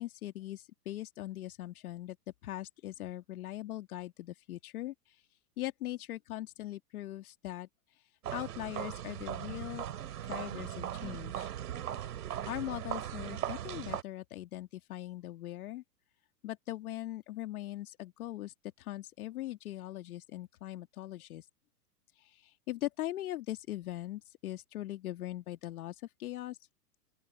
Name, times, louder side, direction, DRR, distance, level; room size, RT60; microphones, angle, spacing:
voice 1, 0.0-2.2 2.4-5.3 5.6-9.9 10.2-11.5 12.4-15.8 16.4-21.5 22.1-26.6, left 15 dB, 60° left, 1.9 m, -41 dB
sound 1, 8.2-14.0, right 10 dB, 70° right, 3.5 m, -39 dB
open air
hypercardioid pair, 115°, 49 cm